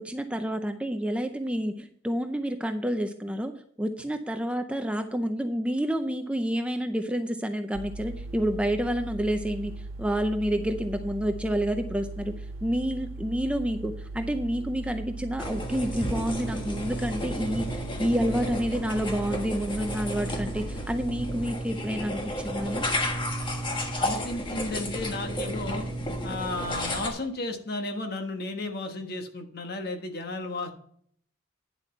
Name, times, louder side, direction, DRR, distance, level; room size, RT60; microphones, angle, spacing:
voice 1, 0.0-12.3 12.6-22.9, equal, 5° right, 6 dB, 0.5 m, -29 dB
sound 1, 7.7-21.5, right 2 dB, 85° right, 0.4 m, -39 dB
sound 2, 15.4-27.1, equal, 25° left, 1.3 m, -32 dB
voice 2, 24.0-25.9 26.2-30.7, left 2 dB, 50° left, 5 dB, 1.3 m, -33 dB
10.0 x 7.6 x 4.4 m, 0.63 s
head